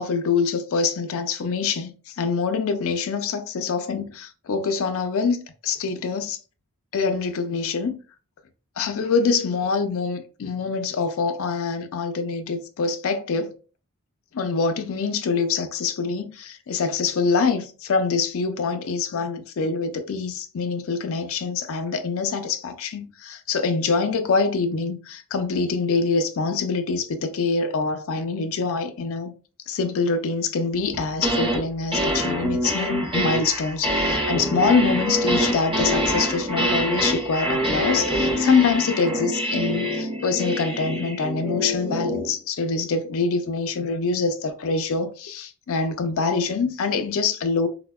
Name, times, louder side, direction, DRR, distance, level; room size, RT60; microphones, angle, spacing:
voice 1, 0.0-6.4 6.9-8.0 8.8-13.5 14.3-29.3 29.7-47.7, left 4 dB, 65° left, 0.4 m, -25 dB
sound 1, 30.9-31.6 31.9-42.3, equal, 20° right, 0.7 m, -25 dB
4.2 x 2.1 x 2.2 m
head